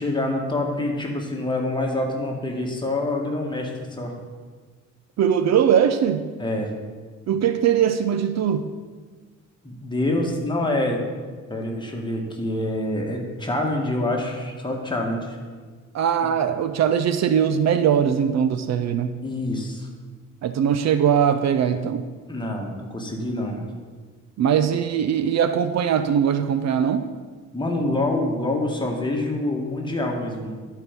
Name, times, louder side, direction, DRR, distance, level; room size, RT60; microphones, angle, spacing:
voice 1, 0.0-4.1 6.4-6.7 9.6-11.0 11.5-15.4 19.2-19.9 22.3-23.7 27.5-30.6, left 1 dB, 15° left, 0 dB, 1.7 m, -26 dB
voice 2, 5.2-6.3 7.3-8.7 15.9-19.1 20.4-22.0 24.4-27.0, right 8 dB, 60° right, 10 dB, 0.6 m, -21 dB
11.0 x 4.6 x 5.3 m, 1.5 s
cardioid pair, 90°, 30 cm